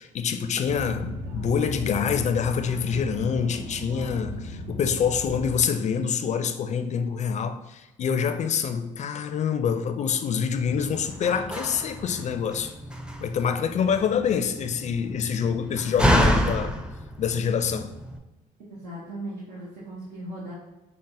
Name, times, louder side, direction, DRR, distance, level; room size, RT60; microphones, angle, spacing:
voice 1, 0.0-12.7 13.2-16.8 17.2-17.9, left 7 dB, 45° left, 0.4 m, -26 dB
sound 1, 0.6-5.6, left 1 dB, 60° right, 0.8 m, -36 dB
Slam, 10.6-18.2, equal, 5° right, 0.5 m, -29 dB
voice 2, 18.7-20.5, right 1 dB, 80° right, 1.1 m, -37 dB
5.4 x 2.1 x 3.9 m
supercardioid pair, 70°, 16 cm